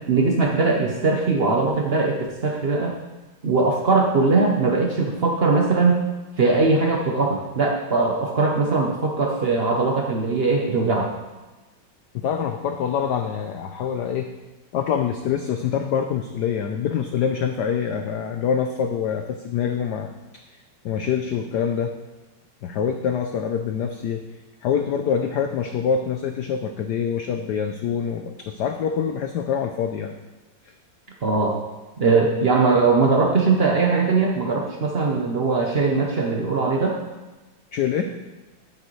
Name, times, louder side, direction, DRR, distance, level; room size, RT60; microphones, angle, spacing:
voice 1, 0.1-3.0 3.4-6.0 6.4-11.1 31.2-31.6 32.0-37.0, right 3 dB, 85° right, 0 dB, 0.5 m, -20 dB
voice 2, 12.1-14.3 14.7-20.1 20.8-21.9 22.6-24.2 24.6-30.2 30.6-30.7 37.7-38.0, left 7 dB, 75° left, 5 dB, 0.9 m, -25 dB
10.0 x 9.2 x 3.2 m, 1.2 s
omnidirectional pair, 2.4 m